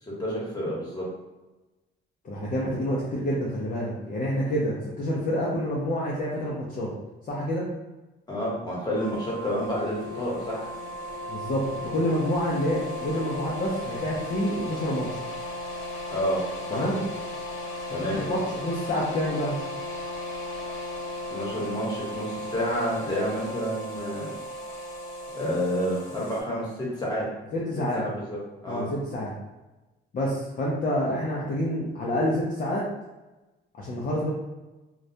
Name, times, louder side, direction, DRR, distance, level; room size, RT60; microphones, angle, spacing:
voice 1, 0.0-1.0 8.3-10.7 16.1-16.4 16.7-16.9 17.9-18.2 21.3-24.3 25.3-26.7 27.0-27.3 27.9-28.4 28.6-28.9, equal, 20° left, -5 dB, 1.1 m, -29 dB
voice 2, 2.2-6.9 7.3-7.7 11.3-11.6 11.9-15.3 16.7-17.0 18.3-19.6 27.5-28.1 28.7-29.3 30.1-32.9 33.8-34.3, equal, 45° left, -5 dB, 0.5 m, -28 dB
sound 1, 8.9-26.4, left 1 dB, 90° left, 0.5 m, -36 dB
2.3 x 2.1 x 2.7 m, 1.1 s
cardioid pair, 90°, 20 cm